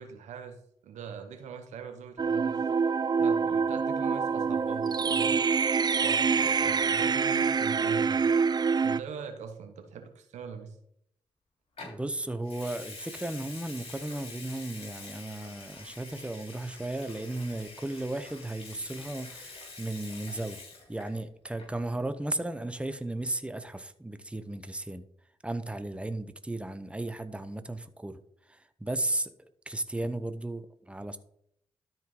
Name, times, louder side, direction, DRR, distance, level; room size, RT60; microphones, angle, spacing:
voice 1, 0.0-2.6 3.2-5.4 6.0-8.2 8.8-10.8, right 6 dB, 80° right, 6 dB, 1.2 m, -42 dB
sound 1, 2.2-9.0, right 5 dB, 35° right, 0.4 m, -26 dB
Water tap faucet / Sink (filling or washing) / Liquid, 11.8-12.0 12.4-21.2 21.5-21.8, left 3 dB, 50° left, 3.5 m, -46 dB
voice 2, 11.8-20.6 20.9-25.0 25.4-28.2 28.5-31.2, right 2 dB, 10° right, 10 dB, 1.0 m, -35 dB
13.0 x 4.6 x 3.9 m, 0.70 s
supercardioid pair, 40°, 12 cm